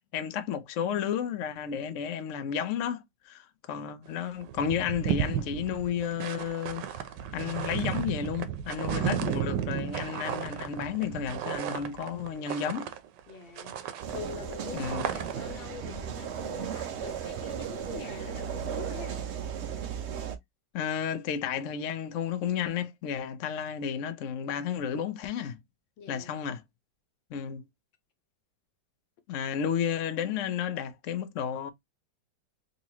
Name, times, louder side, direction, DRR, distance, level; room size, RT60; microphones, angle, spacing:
voice 1, 0.1-7.0 7.3-12.9 14.7-15.1 20.7-25.6 26.1-26.6 27.3-27.7 29.3-31.7, left 8 dB, 70° left, 0.7 m, -32 dB
sound 1, 4.1-4.2 4.4-13.3 13.6-15.6, right 9 dB, 75° right, 1.3 m, -34 dB
voice 2, 13.3-19.2 26.0-26.3, left 7 dB, 90° left, 1.7 m, -44 dB
sound 2, 14.0-20.4, right 8 dB, 90° right, 0.5 m, -36 dB
4.0 x 2.9 x 2.8 m
omnidirectional pair, 2.0 m